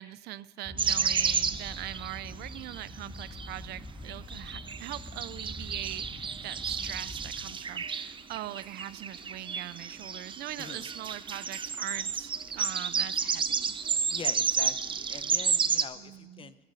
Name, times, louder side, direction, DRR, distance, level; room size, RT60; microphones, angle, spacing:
voice 1, 0.0-13.8 16.0-16.5, right 15 dB, 75° right, 18 dB, 0.5 m, -41 dB
sound 1, 0.6-7.3, left 1 dB, ahead, 1.6 m, -44 dB
sound 2, 0.8-2.8 3.2-3.5 4.1-15.8, right 6 dB, 30° right, 0.6 m, -31 dB
voice 2, 14.1-16.6, left 6 dB, 30° left, 14 dB, 0.7 m, -44 dB
14.0 x 11.5 x 5.5 m, 1.5 s
cardioid pair, 110°, 17 cm